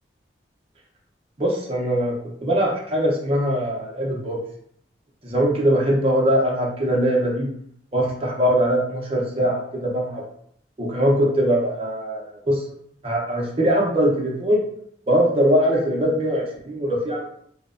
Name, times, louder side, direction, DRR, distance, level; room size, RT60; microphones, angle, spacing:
voice 1, 1.4-2.2 2.4-4.4 5.2-7.5 7.9-10.2 10.8-12.6 13.0-14.6 15.1-17.2, equal, 35° right, -2 dB, 0.6 m, -21 dB
2.8 x 2.0 x 2.4 m, 0.67 s
head